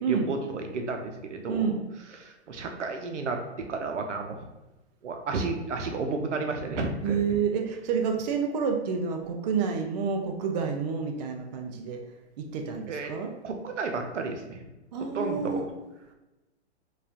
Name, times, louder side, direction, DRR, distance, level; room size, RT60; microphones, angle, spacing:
voice 1, 0.1-1.7 2.1-4.5 5.0-7.4 12.9-13.1 13.4-14.6 15.1-15.7, right 3 dB, 85° right, 4 dB, 0.7 m, -32 dB
voice 2, 1.5-1.8 7.0-12.0 12.4-13.3 14.9-15.6, right 6 dB, 40° right, 3 dB, 0.5 m, -29 dB
4.7 x 2.4 x 2.8 m, 1.0 s
hypercardioid pair, 130°, 35 cm